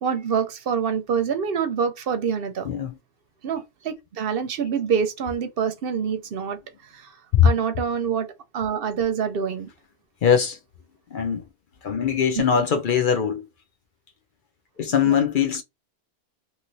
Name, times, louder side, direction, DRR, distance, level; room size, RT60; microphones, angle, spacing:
voice 1, 0.0-2.7 3.4-6.6 6.9-7.1 7.4-8.3 8.5-9.7 12.3-12.7 15.0-15.2, right 7 dB, 65° right, 0.8 m, -26 dB
voice 2, 10.2-10.6 11.1-11.4 11.8-13.5 14.8-15.6, left 7 dB, 60° left, 0.6 m, -22 dB
3.0 x 2.7 x 2.6 m
omnidirectional pair, 1.1 m